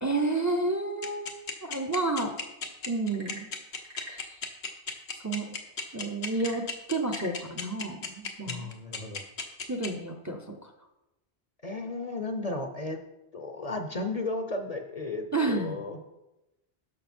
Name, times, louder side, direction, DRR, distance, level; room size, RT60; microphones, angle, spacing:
voice 1, 0.0-2.3 2.9-3.5 4.1-4.4 5.2-5.6 5.9-6.6 6.9-8.7 9.7-10.7 15.3-15.8, right 2 dB, 20° right, 4 dB, 0.7 m, -30 dB
sound 1, 1.0-9.9, left 5 dB, 85° left, 1.4 m, -34 dB
Frog / Percussion / Wood, 3.0-4.3 6.3-7.4, left 1 dB, 55° right, 1.7 m, -46 dB
voice 2, 8.5-9.2 11.6-13.0 13.3-16.0, left 2 dB, 40° left, 5 dB, 0.8 m, -34 dB
11.5 x 6.4 x 4.4 m, 0.96 s
omnidirectional pair, 1.1 m